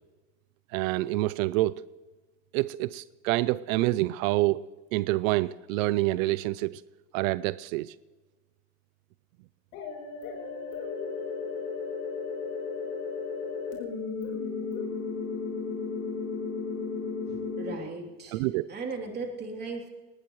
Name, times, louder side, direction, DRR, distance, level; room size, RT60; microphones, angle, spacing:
voice 1, 0.7-1.8 2.5-4.7 4.9-6.8 7.1-7.9 18.3-18.7, right 18 dB, 85° right, 17 dB, 0.6 m, -27 dB
sound 1, 9.7-17.7, left 5 dB, 85° left, 4.4 m, -34 dB
voice 2, 17.2-18.4 18.7-19.9, right 4 dB, 25° right, 1 dB, 3.2 m, -37 dB
19.5 x 19.0 x 3.2 m, 1.2 s
supercardioid pair, 135°, 39 cm